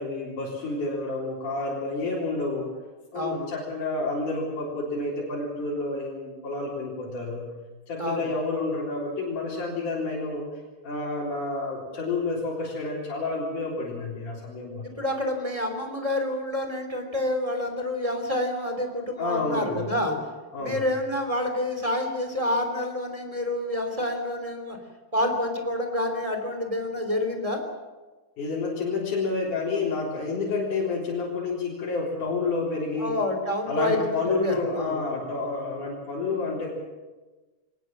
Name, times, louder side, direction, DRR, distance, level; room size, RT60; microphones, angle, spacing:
voice 1, 0.0-2.7 3.1-7.4 7.9-10.5 10.8-14.8 19.2-19.9 20.5-20.8 28.4-33.1 33.7-36.8, left 3 dB, 85° left, -5 dB, 5.4 m, -29 dB
voice 2, 3.1-3.5 8.0-8.3 14.8-20.2 20.6-24.8 25.1-27.6 33.0-35.0, left 1 dB, 10° right, 3 dB, 3.1 m, -28 dB
23.5 x 18.5 x 7.5 m, 1.2 s
omnidirectional pair, 3.5 m